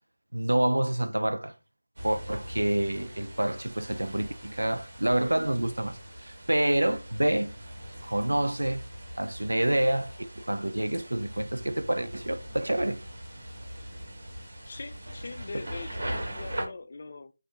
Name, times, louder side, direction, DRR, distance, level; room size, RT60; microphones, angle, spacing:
voice 1, 0.3-1.5 2.0-7.6 8.0-8.8 9.2-13.0 15.5-15.6, right 1 dB, 85° right, 0.4 m, -28 dB
sound 1, 2.0-16.7, equal, 65° right, 1.3 m, -41 dB
voice 2, 14.7-17.3, left 3 dB, 45° left, 0.3 m, -42 dB
4.2 x 2.5 x 2.8 m
figure-of-eight pair, 160°, 0 cm